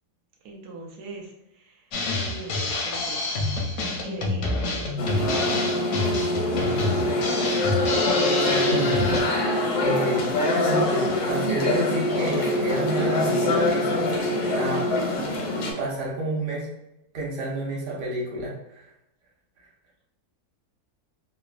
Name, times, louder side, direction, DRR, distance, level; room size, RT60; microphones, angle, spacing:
voice 1, 0.4-1.9 2.2-4.4 4.7-4.9 5.7-6.3, right 3 dB, 85° right, 0 dB, 1.2 m, -41 dB
Drum kit, 1.9-9.2, left 2 dB, 65° left, 0.7 m, -28 dB
sound 1, 5.0-15.7, left 1 dB, 85° left, 1.2 m, -24 dB
voice 2, 8.4-10.3 10.6-14.2 14.5-14.9 15.8-16.7 17.1-18.9, right 1 dB, 45° right, -4 dB, 0.8 m, -30 dB
3.3 x 2.0 x 2.4 m, 0.86 s
omnidirectional pair, 1.7 m